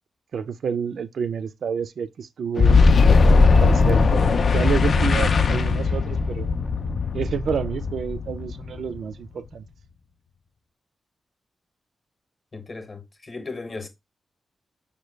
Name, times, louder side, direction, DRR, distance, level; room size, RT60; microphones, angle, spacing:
voice 1, 0.3-2.9 3.6-6.5 7.1-9.7, right 7 dB, 80° right, 0.3 m, -29 dB
Boom, 2.6-9.1, left 4 dB, 55° left, 0.3 m, -19 dB
voice 2, 12.5-13.9, left 3 dB, 35° left, 0.8 m, -36 dB
5.1 x 2.2 x 3.1 m
wide cardioid pair, 120°, 0 cm